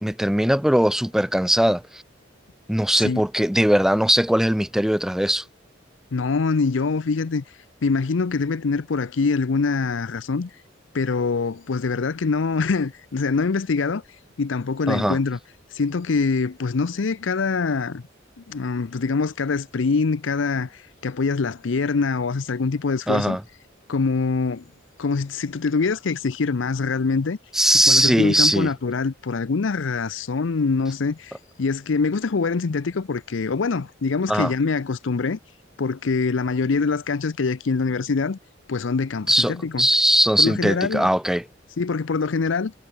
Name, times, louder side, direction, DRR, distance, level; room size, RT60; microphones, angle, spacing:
voice 1, 0.0-2.0 2.7-5.4 14.9-15.2 23.1-23.4 27.5-28.7 34.3-34.5 39.3-41.4, right 1 dB, ahead, 0.5 m, -20 dB
voice 2, 6.1-10.6 10.9-14.0 14.4-15.4 15.7-18.0 18.4-23.4 23.9-24.6 25.0-27.4 27.7-35.4 35.8-38.4 38.7-39.9 40.4-41.1 41.8-42.7, left 4 dB, 70° left, 0.6 m, -24 dB
head